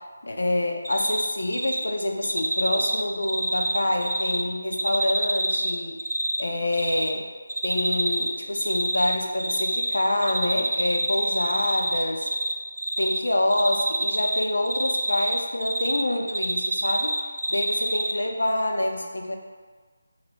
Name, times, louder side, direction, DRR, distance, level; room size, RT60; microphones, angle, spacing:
voice 1, 0.2-6.0 6.4-7.3 7.6-12.3 13.0-19.4, left 1 dB, 65° left, 3 dB, 0.4 m, -26 dB
Cricket, 0.8-1.3 1.5-1.8 2.2-4.4 4.7-6.4 6.7-7.1 7.5-8.3 8.6-10.0 10.2-12.5 12.8-13.2 13.5-16.0 16.3-18.1, right 1 dB, 60° right, 0.3 m, -26 dB
3.2 x 2.7 x 2.9 m, 1.5 s
figure-of-eight pair, 155°, 0 cm